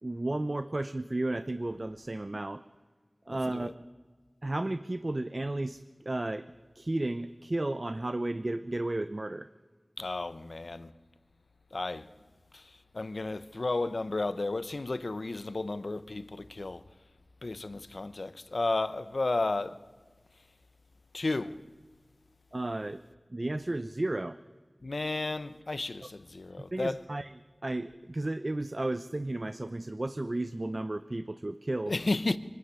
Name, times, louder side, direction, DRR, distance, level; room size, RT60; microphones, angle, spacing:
voice 1, 0.0-2.6 3.3-3.7 4.4-9.5 22.5-23.0 23.3-24.4 26.0-26.1 26.7-32.0, right 2 dB, 50° right, 0.7 m, -33 dB
voice 2, 10.0-10.9 11.7-12.1 12.5-12.6 12.9-16.8 17.4-19.8 21.1-21.6 24.8-27.0 31.9-32.4, left 2 dB, 90° left, 0.8 m, -33 dB
24.5 x 13.0 x 9.8 m
wide cardioid pair, 45°, 0 cm